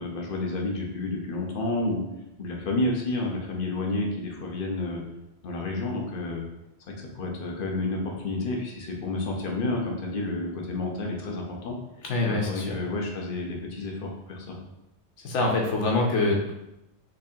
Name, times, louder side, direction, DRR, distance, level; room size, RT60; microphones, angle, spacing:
voice 1, 0.0-2.0 2.4-5.0 5.4-6.4 7.1-11.8 12.2-14.6, left 2 dB, 55° left, 0 dB, 0.9 m, -30 dB
voice 2, 12.1-12.8 15.2-16.5, left 2 dB, 90° left, -1 dB, 1.1 m, -25 dB
3.9 x 3.2 x 2.7 m, 0.89 s
omnidirectional pair, 1.2 m